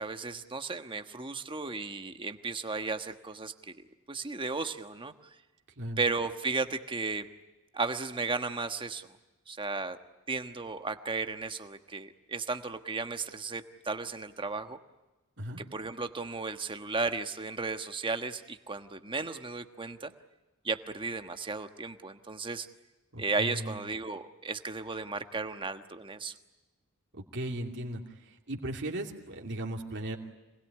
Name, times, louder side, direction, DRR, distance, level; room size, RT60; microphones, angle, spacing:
voice 1, 0.0-3.7 4.1-5.1 6.0-7.3 7.7-9.2 9.5-10.0 10.3-14.8 15.7-20.1 20.6-22.7 23.2-26.3, right 4 dB, 25° right, 8 dB, 1.3 m, -34 dB
voice 2, 23.1-23.7 27.3-28.0 28.5-30.2, right 1 dB, 55° right, 1 dB, 2.7 m, -36 dB
27.0 x 20.5 x 9.9 m, 1.1 s
head